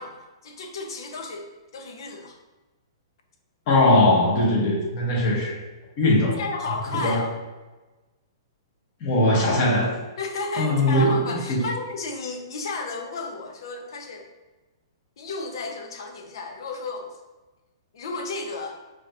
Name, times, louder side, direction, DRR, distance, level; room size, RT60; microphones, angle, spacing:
voice 1, 0.0-1.5 1.7-2.4 6.4-7.4 10.2-14.3 15.2-17.2 17.9-18.8, left 3 dB, 65° left, 3 dB, 0.8 m, -33 dB
voice 2, 3.7-5.6 6.0-6.4 6.6-7.3 9.0-10.0 10.5-11.6, left 1 dB, 45° left, -3 dB, 1.5 m, -20 dB
5.0 x 3.0 x 2.5 m, 1.2 s
hypercardioid pair, 135°, 3 cm